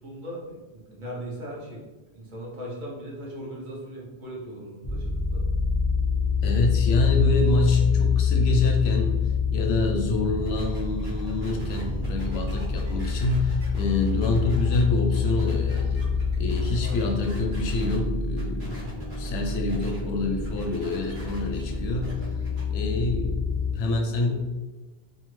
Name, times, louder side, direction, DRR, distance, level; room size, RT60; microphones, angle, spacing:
voice 1, 0.0-1.8 2.1-5.4 16.8-17.2, equal, 55° right, -4 dB, 0.8 m, -39 dB
sound 1, 4.8-23.7, left 5 dB, 30° left, 0.3 m, -27 dB
voice 2, 6.4-9.2 9.5-16.0 16.4-18.9 19.2-22.2 22.7-23.4 23.7-24.3, left 2 dB, 90° left, 3 dB, 0.8 m, -26 dB
sound 2, 10.4-18.0 18.3-20.0 20.3-22.6, equal, 75° right, 1.1 m, -45 dB
2.7 x 2.3 x 3.0 m, 1.2 s
omnidirectional pair, 1.0 m